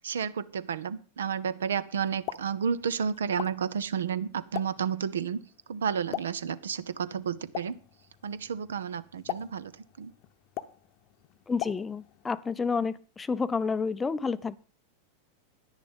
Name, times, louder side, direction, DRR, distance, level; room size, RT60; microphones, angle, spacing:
voice 1, 0.0-5.4 5.7-7.8 8.2-9.7 10.0-10.1, right 7 dB, 65° right, 16 dB, 0.7 m, -31 dB
Explosion, 2.0-12.3, left 14 dB, 40° left, 0.9 m, -43 dB
voice 2, 11.5-14.5, left 5 dB, 15° left, 16 dB, 0.6 m, -30 dB
11.0 x 10.5 x 5.3 m, 0.37 s
figure-of-eight pair, 90°, 0 cm